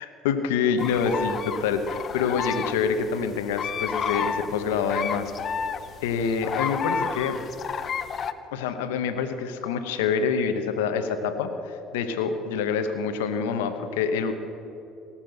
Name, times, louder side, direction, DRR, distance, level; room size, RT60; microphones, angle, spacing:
voice 1, 0.0-5.3 6.0-7.4 8.5-14.3, left 6 dB, 85° left, 8 dB, 0.9 m, -26 dB
sound 1, 0.8-8.3, left 6 dB, 50° left, 0.7 m, -31 dB
17.5 x 7.3 x 7.8 m, 2.9 s
supercardioid pair, 75°, 0 cm